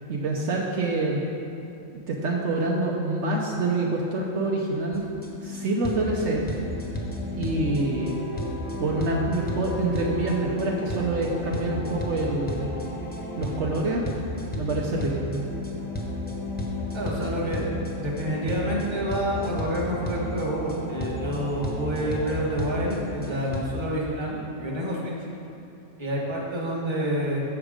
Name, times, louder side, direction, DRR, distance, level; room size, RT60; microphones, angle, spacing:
voice 1, 0.1-1.2 1.9-5.1 5.4-6.5 7.4-8.2 8.8-12.7 13.4-14.1 14.6-15.5, right 2 dB, 70° right, -1 dB, 1.0 m, -26 dB
sound 1, 4.9-23.6, left 1 dB, 10° left, 0.8 m, -33 dB
voice 2, 16.9-17.7 18.0-25.1 26.0-27.4, equal, 25° right, -4 dB, 1.2 m, -28 dB
7.1 x 6.1 x 5.0 m, 2.7 s
omnidirectional pair, 1.3 m